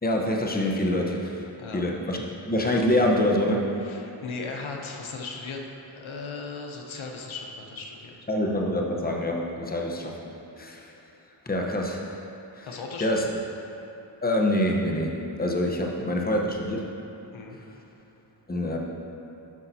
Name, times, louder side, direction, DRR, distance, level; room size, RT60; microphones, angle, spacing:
voice 1, 0.0-1.4 1.7-3.7 8.3-10.2 10.6-10.9 11.5-12.2 12.6-12.7 13.0-13.2 14.2-16.9 18.5-18.8, left 1 dB, 20° left, 0 dB, 0.9 m, -25 dB
voice 2, 3.8-8.2 12.7-13.2 15.8-16.1 17.3-17.6, left 4 dB, 80° left, 1 dB, 0.9 m, -37 dB
12.0 x 5.6 x 2.8 m, 2.9 s
cardioid pair, 50°, 48 cm